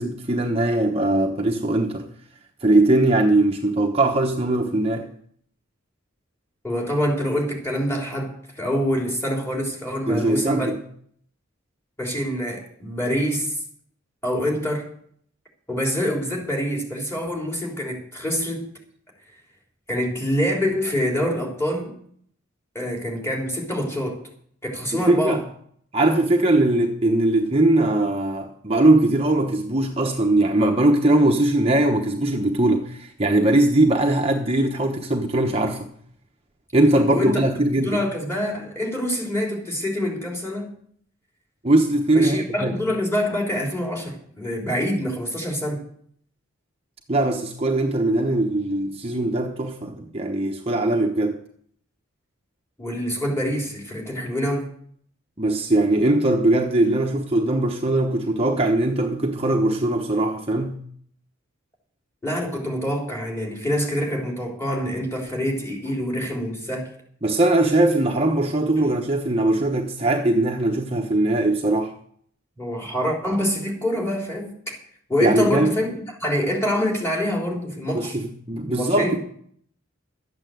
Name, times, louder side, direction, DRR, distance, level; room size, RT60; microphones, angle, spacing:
voice 1, 0.0-2.1 2.6-5.1 10.1-10.7 24.9-25.4 25.9-35.9 36.7-38.0 41.6-42.7 47.1-51.4 55.4-60.8 67.2-71.9 75.2-75.7 77.9-79.2, right 2 dB, 30° right, 1.0 m, -20 dB
voice 2, 6.6-10.7 12.0-13.6 14.2-14.9 15.7-18.7 19.9-21.9 22.8-24.2 24.6-25.4 36.9-37.4 37.8-40.7 42.1-45.8 52.8-54.7 62.2-66.9 72.6-74.8 75.1-78.2 78.7-79.2, equal, 10° left, 3.6 m, -26 dB
12.5 x 8.9 x 7.8 m
head